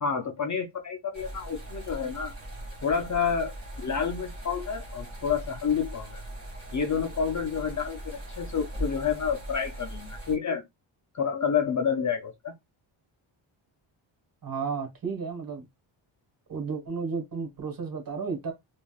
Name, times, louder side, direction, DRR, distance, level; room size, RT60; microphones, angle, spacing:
voice 1, 0.0-2.3 2.8-3.5 3.8-6.2 6.7-10.6 11.1-12.5, left 6 dB, 40° left, 0.5 m, -29 dB
sound 1, 1.1-10.4, right 1 dB, 25° right, 1.9 m, -40 dB
voice 2, 14.4-15.6 16.5-18.5, right 5 dB, 45° right, 1.4 m, -33 dB
3.3 x 2.4 x 2.3 m
wide cardioid pair, 145°, 50 cm